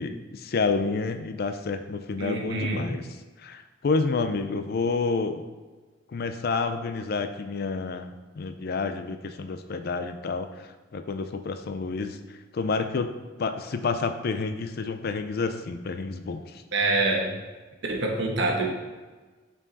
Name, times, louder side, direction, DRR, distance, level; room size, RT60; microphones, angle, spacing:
voice 1, 0.0-3.1 3.4-5.4 6.1-12.2 12.5-13.1 13.4-16.4, left 4 dB, 55° left, 9 dB, 0.4 m, -29 dB
voice 2, 2.2-2.8 16.7-17.3 17.9-18.7, right 2 dB, 65° right, 1 dB, 1.1 m, -25 dB
5.8 x 4.7 x 4.0 m, 1.3 s
head